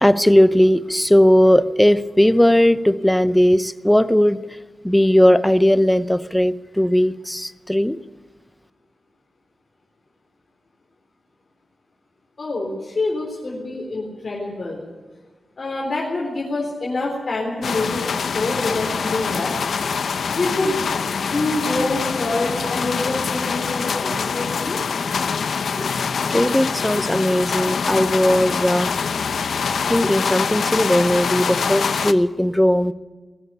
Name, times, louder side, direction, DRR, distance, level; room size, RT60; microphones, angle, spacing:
voice 1, 0.0-4.4 4.8-8.0 25.8-25.9 26.2-28.9 29.8-32.9, equal, 5° left, 13 dB, 0.6 m, -17 dB
voice 2, 12.4-14.8 15.6-19.6 20.3-20.9 21.2-24.8, left 2 dB, 40° left, -3 dB, 4.0 m, -26 dB
sound 1, 17.6-32.1, left 6 dB, 70° left, 0.8 m, -24 dB
19.5 x 13.5 x 10.0 m, 1.3 s
wide cardioid pair, 180°, 0 cm